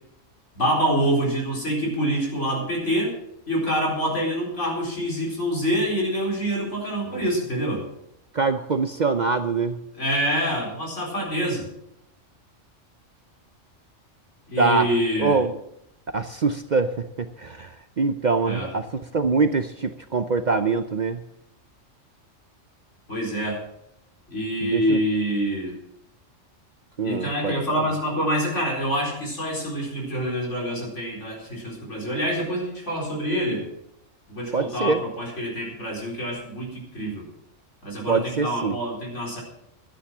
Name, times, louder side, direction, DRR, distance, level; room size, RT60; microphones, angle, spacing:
voice 1, 0.6-3.1 3.5-7.9 9.9-11.7 14.5-15.4 18.5-18.7 23.1-23.6 24.3-25.8 27.0-33.6 34.3-37.2 37.8-39.4, equal, 70° left, -2 dB, 4.7 m, -26 dB
voice 2, 8.3-9.8 14.6-14.9 15.2-15.5 16.1-21.2 24.6-25.0 27.0-27.9 34.5-35.0 38.1-38.8, right 4 dB, 45° right, 9 dB, 0.7 m, -24 dB
13.0 x 10.0 x 6.1 m, 0.79 s
omnidirectional pair, 1.3 m